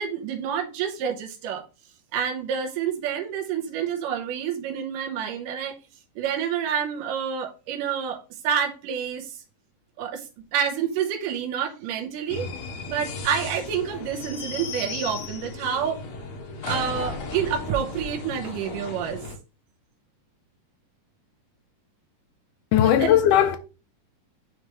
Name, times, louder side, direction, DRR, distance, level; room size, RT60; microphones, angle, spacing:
voice 1, 0.0-1.7 2.1-5.8 6.2-9.4 10.0-10.2 10.5-12.5 12.9-16.0 16.7-19.3 22.8-23.1, right 8 dB, 80° right, 2.6 m, -28 dB
sound 1, 12.3-19.4, left 3 dB, 60° left, 2.2 m, -35 dB
voice 2, 22.7-23.6, left 10 dB, 80° left, 2.1 m, -18 dB
9.7 x 3.4 x 3.1 m
omnidirectional pair, 3.7 m